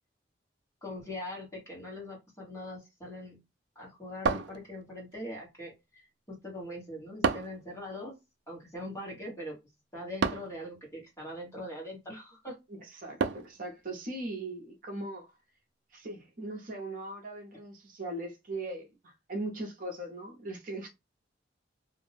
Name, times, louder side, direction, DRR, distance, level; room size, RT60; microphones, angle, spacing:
voice 1, 0.8-3.4 3.7-8.2 8.5-9.6 9.9-12.6, left 1 dB, 15° left, 1.2 m, -42 dB
sound 1, 4.3-5.1 7.2-7.7 10.2-10.6 13.2-13.6, right 5 dB, 70° right, 0.3 m, -30 dB
voice 2, 12.8-15.3 15.9-20.9, right 2 dB, 50° right, 0.7 m, -39 dB
2.5 x 2.1 x 3.2 m
head